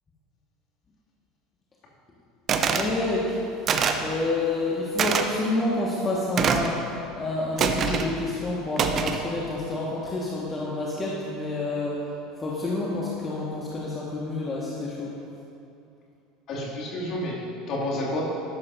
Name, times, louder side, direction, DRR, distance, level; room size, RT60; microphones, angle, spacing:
sound 1, 2.5-2.9 3.7-4.1 5.0-5.3 6.4-6.7 7.6-8.1 8.8-9.2, right 6 dB, 40° right, 0.7 m, -24 dB
voice 1, 2.6-12.1 12.4-15.1, left 2 dB, 25° left, -5 dB, 1.6 m, -29 dB
voice 2, 16.5-18.4, left 1 dB, 45° left, -4 dB, 2.5 m, -30 dB
13.5 x 11.5 x 2.7 m, 2.7 s
figure-of-eight pair, 70°, 0 cm